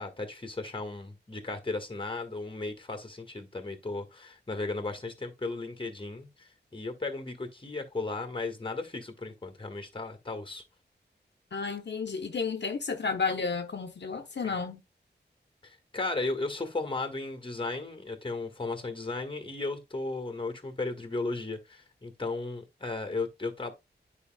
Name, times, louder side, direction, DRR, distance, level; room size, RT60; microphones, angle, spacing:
voice 1, 0.0-10.6 15.6-23.7, left 3 dB, 30° left, 1.6 m, -35 dB
voice 2, 11.5-14.8, left 5 dB, 70° left, 0.9 m, -32 dB
9.8 x 5.0 x 2.2 m
wide cardioid pair, 85°, 18 cm